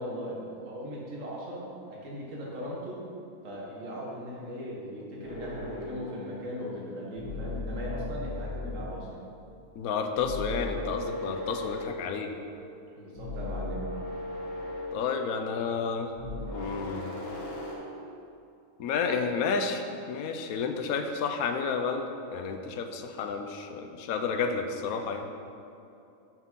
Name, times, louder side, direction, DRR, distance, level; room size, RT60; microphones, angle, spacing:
voice 1, 0.0-3.0 3.4-9.2 12.9-13.9, equal, 65° right, -4 dB, 1.8 m, -38 dB
sound 1, 5.2-6.4 7.1-9.1 10.1-12.8 13.1-15.8 16.1-17.8, left 2 dB, 60° left, 1.7 m, -37 dB
voice 2, 9.7-12.3 14.9-16.1 16.5-17.1 18.8-25.3, left 5 dB, 85° left, 6 dB, 1.1 m, -31 dB
6.0 x 5.9 x 5.5 m, 2.7 s
omnidirectional pair, 1.5 m